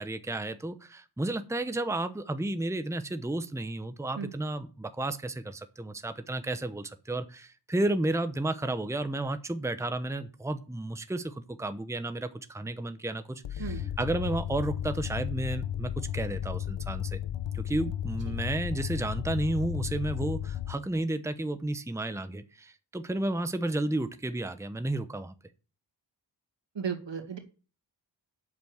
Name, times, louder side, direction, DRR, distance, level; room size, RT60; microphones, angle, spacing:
voice 1, 0.0-17.2 17.5-25.3, right 2 dB, 5° right, 10 dB, 0.8 m, -32 dB
sound 1, 13.4-20.8, left 10 dB, 85° left, 0.7 m, -34 dB
voice 2, 26.8-27.4, right 6 dB, 75° right, 6 dB, 2.2 m, -34 dB
8.5 x 6.9 x 7.9 m, 0.35 s
wide cardioid pair, 70°, 44 cm